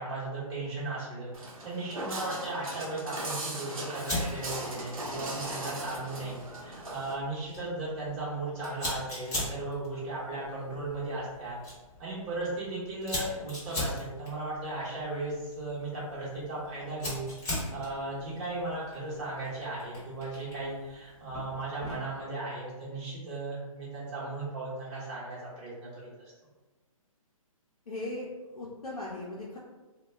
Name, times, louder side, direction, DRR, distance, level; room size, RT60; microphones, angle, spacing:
voice 1, 0.0-11.6 12.0-26.3, right 2 dB, 20° right, -8 dB, 1.0 m, -36 dB
Walk footsteps, 1.3-7.1, right 1 dB, 70° right, 0.8 m, -38 dB
Fire, 4.0-22.2, left 1 dB, 15° left, 0.8 m, -41 dB
voice 2, 27.9-29.6, left 2 dB, 85° left, -6 dB, 0.6 m, -38 dB
2.2 x 2.0 x 3.3 m, 1.2 s
hypercardioid pair, 145°, 19 cm